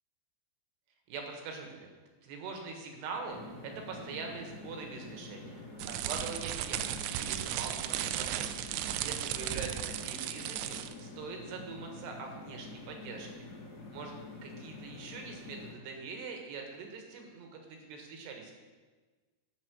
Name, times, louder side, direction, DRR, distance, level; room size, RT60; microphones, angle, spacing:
voice 1, 1.1-1.9 2.2-6.9 7.1-8.5 9.0-13.5 13.9-18.5, right 4 dB, 70° right, 2 dB, 3.4 m, -43 dB
sound 1, 3.3-15.7, left 3 dB, 40° left, 2.3 m, -47 dB
sound 2, 5.8-11.0, right 12 dB, 85° right, 2.4 m, -35 dB
11.0 x 7.4 x 6.2 m, 1.3 s
omnidirectional pair, 5.3 m